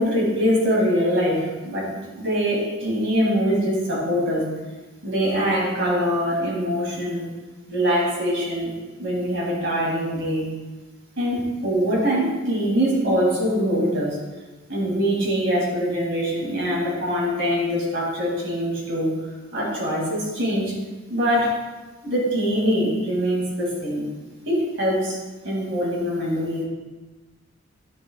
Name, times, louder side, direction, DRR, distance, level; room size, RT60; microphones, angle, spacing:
voice 1, 0.0-4.5 5.0-7.3 7.7-8.7 9.0-10.5 11.2-14.2 14.7-19.1 19.5-20.8 21.1-21.6 22.0-24.1 24.4-25.2 25.4-26.6, equal, 65° right, -3 dB, 2.6 m, -23 dB
10.5 x 7.7 x 2.4 m, 1.2 s
head